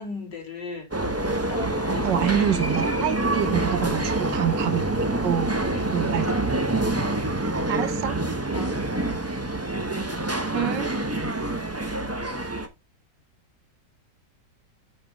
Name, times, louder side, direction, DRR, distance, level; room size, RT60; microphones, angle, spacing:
voice 1, 0.0-2.3 5.5-5.9 7.0-7.5 8.5-8.8, left 4 dB, 70° left, 3.7 m, -38 dB
sound 1, 0.9-12.7, right 2 dB, 20° right, 0.4 m, -26 dB
voice 2, 2.0-4.9 5.2-5.5 5.9-6.4 7.7-8.2 10.5-10.9, right 9 dB, 75° right, 1.6 m, -26 dB
8.3 x 5.6 x 3.5 m
omnidirectional pair, 2.0 m